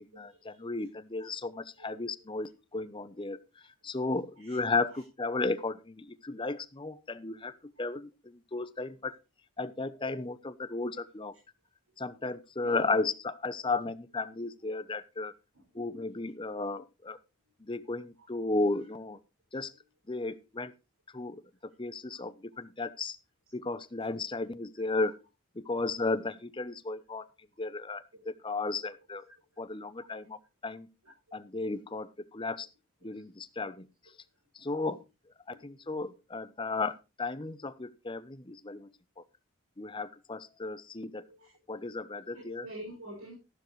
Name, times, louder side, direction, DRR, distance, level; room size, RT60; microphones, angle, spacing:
voice 1, 0.0-3.4 3.8-7.5 7.8-9.2 9.6-11.3 12.0-15.3 15.7-17.2 17.6-19.2 19.5-19.7 20.1-20.7 21.1-23.2 23.5-25.1 25.6-27.3 27.6-29.2 29.6-30.9 31.3-32.7 33.0-33.9 34.5-35.0 35.5-38.9 39.2-39.3 39.8-41.2 41.7-42.7, left 3 dB, 25° left, 13 dB, 0.7 m, -34 dB
voice 2, 1.8-2.2 4.4-4.6 6.3-6.5 12.6-13.0 13.6-13.8 15.5-15.6 25.7-25.9 26.9-27.0 33.0-33.2 34.8-34.9 35.5-35.8 36.6-36.8 41.2-41.5 42.3-43.3, right 1 dB, 90° right, -3 dB, 6.0 m, -48 dB
13.0 x 12.0 x 3.1 m, 0.27 s
head